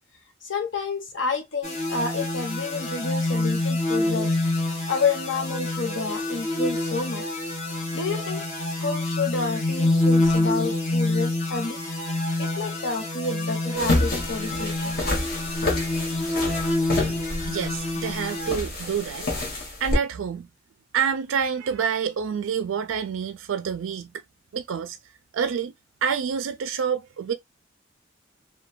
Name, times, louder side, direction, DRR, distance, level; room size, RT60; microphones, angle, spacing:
voice 1, 0.4-4.3 4.9-7.3 7.9-8.4 8.8-11.8 12.4-15.0, left 4 dB, 70° left, 0.9 m, -29 dB
sound 1, 1.6-18.6, left 2 dB, 35° left, 0.9 m, -27 dB
sound 2, 13.7-20.0, left 2 dB, 50° left, 1.2 m, -28 dB
voice 2, 17.5-19.2 19.8-20.5 20.9-24.1 24.5-25.0 25.3-25.7 26.0-27.3, right 7 dB, 85° right, 0.4 m, -27 dB
3.0 x 2.2 x 2.2 m
head